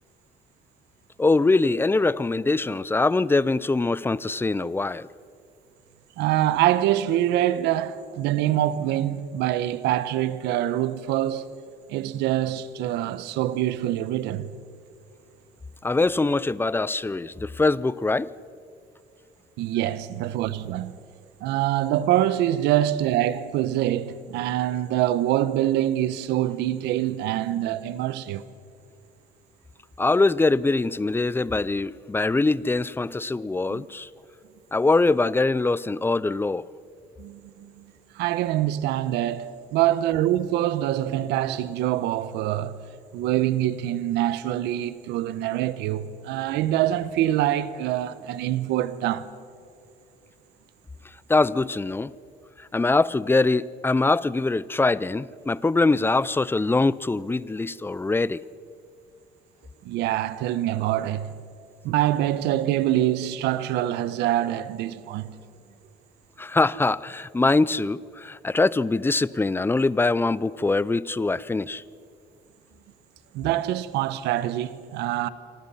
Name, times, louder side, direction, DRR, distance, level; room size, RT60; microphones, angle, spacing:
voice 1, 1.2-5.1 15.8-18.3 30.0-34.1 34.7-36.7 51.3-52.1 52.6-58.4 66.4-71.8, left 3 dB, 15° left, 0.5 m, -23 dB
voice 2, 6.2-11.5 11.9-14.5 19.6-21.0 21.4-28.4 33.7-33.9 37.2-37.8 38.1-42.8 43.1-49.3 59.8-61.3 61.8-65.4 73.3-75.3, right 13 dB, 90° right, 1.1 m, -25 dB
27.0 x 25.0 x 5.7 m
cardioid pair, 110°, 17 cm